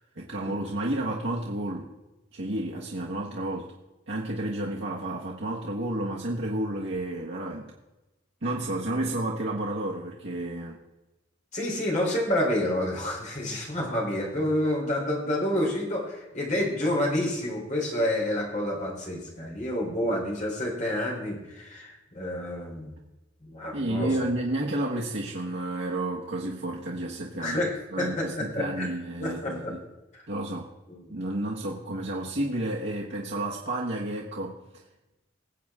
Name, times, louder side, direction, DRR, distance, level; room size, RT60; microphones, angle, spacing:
voice 1, 0.2-1.9 2.3-3.7 4.1-7.7 8.4-10.8 23.7-29.8 30.3-30.6 31.1-34.6, right 1 dB, 65° right, -3 dB, 1.4 m, -31 dB
voice 2, 11.5-22.9 23.4-24.1 27.3-28.9 29.2-29.7 30.1-30.2 30.9-31.1, left 1 dB, 40° left, -2 dB, 3.7 m, -29 dB
20.5 x 7.8 x 3.7 m, 1.0 s
head